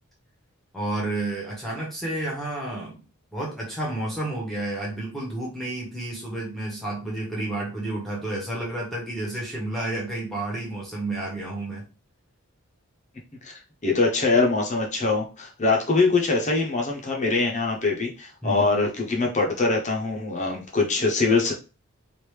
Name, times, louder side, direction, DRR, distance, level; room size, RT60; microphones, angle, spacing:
voice 1, 0.7-3.0 3.3-11.8 18.4-18.7, right 2 dB, ahead, -5 dB, 0.9 m, -30 dB
voice 2, 13.8-21.5, left 3 dB, 30° left, 0 dB, 0.7 m, -23 dB
3.4 x 2.5 x 3.1 m, 0.32 s
head